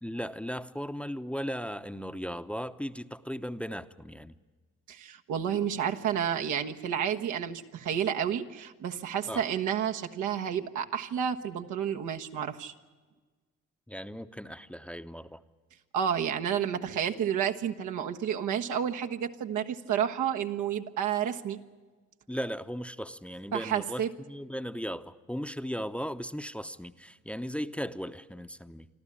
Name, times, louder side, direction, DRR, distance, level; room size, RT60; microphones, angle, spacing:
voice 1, 0.0-4.4 9.3-9.4 13.9-15.4 22.3-24.0 24.3-28.9, equal, 5° left, 10 dB, 0.8 m, -37 dB
voice 2, 4.9-12.7 15.9-21.6 23.5-24.1, right 9 dB, 80° right, 4 dB, 1.4 m, -30 dB
25.0 x 13.5 x 10.0 m, 1.4 s
cardioid pair, 90°, 30 cm